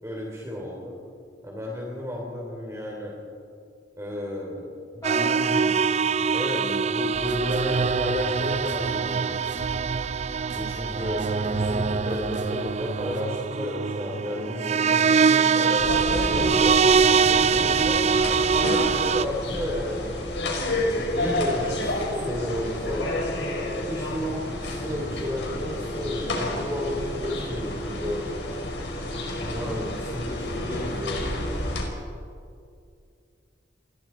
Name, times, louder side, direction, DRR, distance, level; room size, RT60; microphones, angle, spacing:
voice 1, 0.0-1.0 1.4-3.2 4.0-4.7 6.3-9.4 10.5-16.8 17.2-18.0 18.5-20.1 21.1-23.2 23.7-28.3 29.2-31.5, left 1 dB, 15° right, -2 dB, 3.5 m, -32 dB
voice 2, 4.9-7.4 21.1-21.3, left 1 dB, 20° left, -4 dB, 7.7 m, -36 dB
sound 1, 5.0-19.2, right 5 dB, 40° right, 0.5 m, -23 dB
sound 2, 7.1-13.2, equal, 80° right, 3.1 m, -40 dB
sound 3, 15.8-31.8, left 1 dB, 80° left, 4.9 m, -30 dB
29.5 x 21.5 x 4.5 m, 2.3 s
head